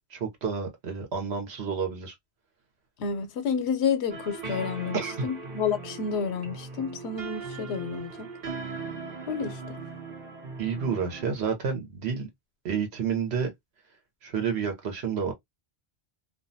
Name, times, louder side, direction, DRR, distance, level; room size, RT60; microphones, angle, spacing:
voice 1, 0.1-2.1 4.9-5.3 10.6-12.3 12.6-13.5 14.2-15.3, right 6 dB, 80° right, 1.1 m, -30 dB
voice 2, 3.0-8.3 9.3-9.8, left 6 dB, 85° left, 0.8 m, -30 dB
sound 1, 4.1-11.3, right 4 dB, 60° right, 0.9 m, -39 dB
2.5 x 2.2 x 2.6 m
omnidirectional pair, 1.1 m